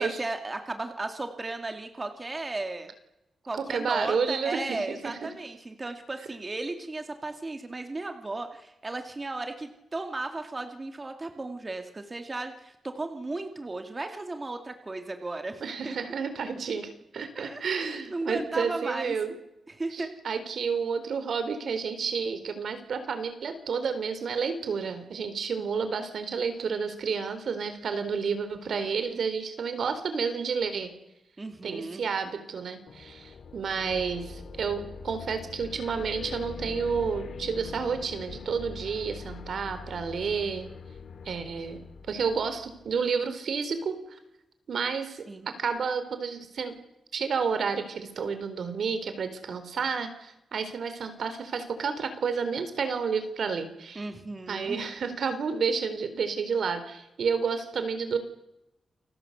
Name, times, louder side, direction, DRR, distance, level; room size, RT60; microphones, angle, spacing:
voice 1, 0.0-2.9 3.5-16.0 17.4-19.1 19.7-20.1 31.4-32.0 45.3-45.5 54.0-54.8, right 2 dB, 25° right, 5 dB, 2.4 m, -35 dB
voice 2, 3.6-4.8 5.0-5.3 15.6-19.3 19.9-30.9 31.6-40.7 41.2-41.8 42.1-44.2 44.7-46.7 47.1-54.1 54.5-58.2, right 5 dB, 65° right, 10 dB, 4.1 m, -30 dB
sound 1, 32.9-43.1, left 5 dB, 65° left, 2.0 m, -42 dB
29.0 x 22.0 x 8.2 m, 0.88 s
wide cardioid pair, 150°, 0 cm